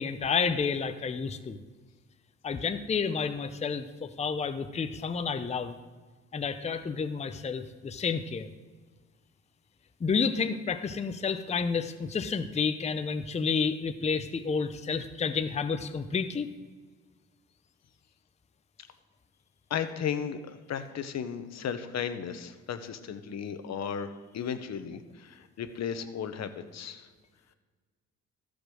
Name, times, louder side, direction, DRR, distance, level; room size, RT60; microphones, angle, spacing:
voice 1, 0.0-1.6 2.4-5.8 6.3-8.5 10.0-16.5, left 5 dB, 20° left, 9 dB, 0.6 m, -30 dB
voice 2, 19.7-27.1, left 7 dB, 60° left, 9 dB, 1.0 m, -35 dB
13.5 x 5.1 x 6.2 m, 1.4 s
cardioid pair, 90°, 30 cm